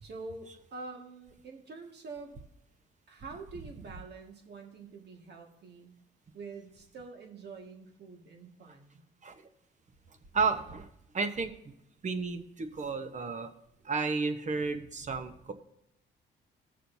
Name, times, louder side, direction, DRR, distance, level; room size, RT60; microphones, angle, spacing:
voice 1, 0.0-2.4 3.1-5.9 6.3-9.0, right 4 dB, 55° right, 3 dB, 1.8 m, -46 dB
voice 2, 10.3-10.9 11.1-11.7 12.0-13.5 13.8-15.5, right 4 dB, 35° right, 8 dB, 1.1 m, -32 dB
19.0 x 6.6 x 2.7 m, 0.81 s
cardioid pair, 90°, 20 cm